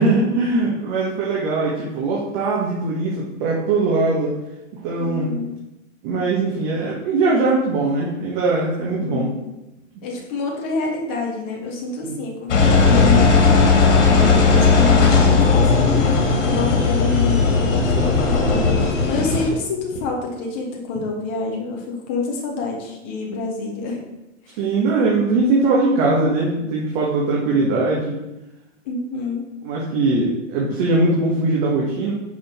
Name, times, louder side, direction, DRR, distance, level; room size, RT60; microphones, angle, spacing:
voice 1, 0.0-4.3 4.8-5.3 6.0-9.3 12.0-12.1 17.9-19.2 24.6-28.2 29.6-32.1, right 3 dB, 40° right, -3 dB, 1.2 m, -21 dB
voice 2, 5.0-5.6 9.1-9.5 10.0-13.8 14.1-15.9 16.4-18.2 19.1-24.0 24.5-24.6 28.9-29.5, left 4 dB, 10° left, 0 dB, 0.3 m, -27 dB
Engine, 12.5-19.5, left 4 dB, 65° left, 1.8 m, -16 dB
5.6 x 5.1 x 4.1 m, 0.94 s
hypercardioid pair, 150°, 38 cm